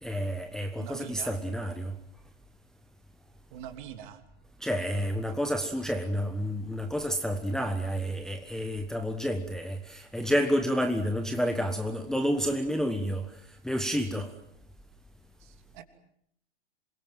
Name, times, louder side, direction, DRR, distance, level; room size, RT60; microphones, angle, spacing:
voice 1, 0.0-1.9 4.6-13.3 13.6-14.3, equal, ahead, 1.2 m, -29 dB
voice 2, 0.8-1.3 3.5-4.2 15.4-15.8, right 10 dB, 45° right, 3.1 m, -44 dB
27.0 x 22.5 x 7.6 m
figure-of-eight pair, 120°, 34 cm